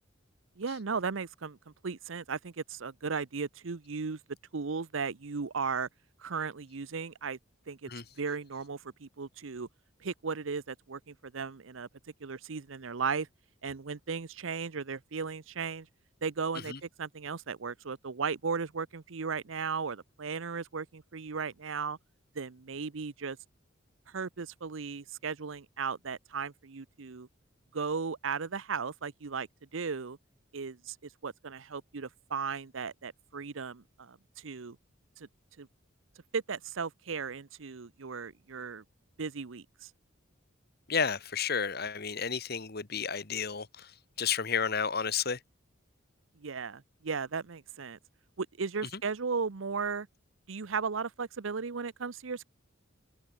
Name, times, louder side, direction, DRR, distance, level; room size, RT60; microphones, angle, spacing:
voice 1, 0.6-1.6 1.8-4.2 4.5-5.9 6.2-7.4 7.7-7.9 8.2-9.7 10.0-11.9 12.2-13.3 13.6-15.9 16.2-22.0 22.4-23.4 24.1-27.3 27.7-30.2 30.5-31.0 31.2-34.8 35.2-35.3 35.6-35.7 36.3-38.8 39.2-39.9 46.4-48.0 48.4-50.1 50.5-52.5, right 5 dB, 80° right, 0.8 m, -36 dB
voice 2, 40.9-43.9 44.2-45.4, left 6 dB, 50° left, 1.6 m, -31 dB
head